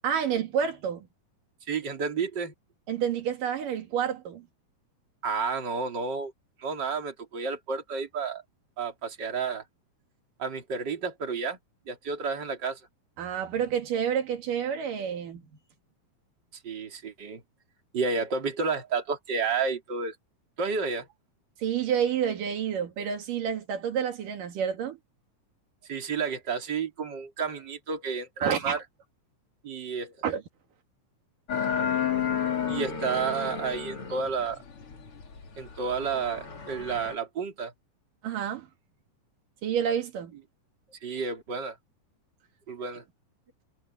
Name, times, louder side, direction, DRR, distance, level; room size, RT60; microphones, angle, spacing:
voice 1, 0.0-1.1 2.9-4.5 13.2-15.4 21.6-25.0 28.4-28.8 30.2-30.4 38.2-38.7 39.6-40.3, right 8 dB, 80° right, 3.7 m, -29 dB
voice 2, 1.7-2.5 5.2-6.3 6.6-8.4 8.8-9.6 10.4-11.6 11.9-12.8 16.6-17.4 17.9-20.2 20.6-21.1 25.9-28.8 29.6-30.1 32.7-34.6 35.6-37.7 41.0-41.8 42.7-43.0, right 5 dB, 35° right, 3.6 m, -31 dB
sound 1, 31.5-37.2, left 8 dB, 45° left, 3.3 m, -32 dB
omnidirectional pair, 3.8 m